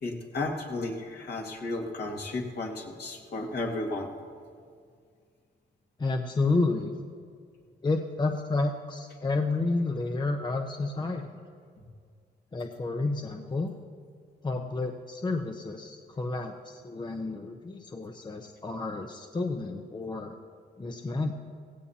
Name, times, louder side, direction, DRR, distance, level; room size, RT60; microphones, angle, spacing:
voice 1, 0.0-4.1, left 2 dB, 55° left, 1 dB, 2.1 m, -33 dB
voice 2, 6.0-6.9 7.8-11.2 12.5-13.7 14.4-20.3 20.8-21.3, left 3 dB, 20° left, 4 dB, 0.8 m, -30 dB
17.0 x 16.0 x 2.9 m, 2.1 s
cardioid pair, 90°, 20 cm